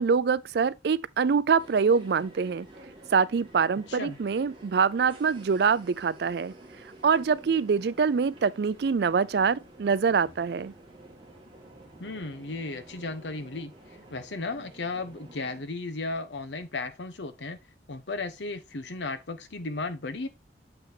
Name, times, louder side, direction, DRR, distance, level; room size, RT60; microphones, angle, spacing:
voice 1, 0.0-2.7 3.1-6.5 7.0-10.7, right 5 dB, 65° right, 0.4 m, -24 dB
sound 1, 1.6-15.6, right 1 dB, 30° right, 1.9 m, -51 dB
voice 2, 12.0-13.7 14.1-17.6 17.9-20.3, left 3 dB, 85° left, 0.9 m, -35 dB
7.1 x 5.9 x 2.8 m
head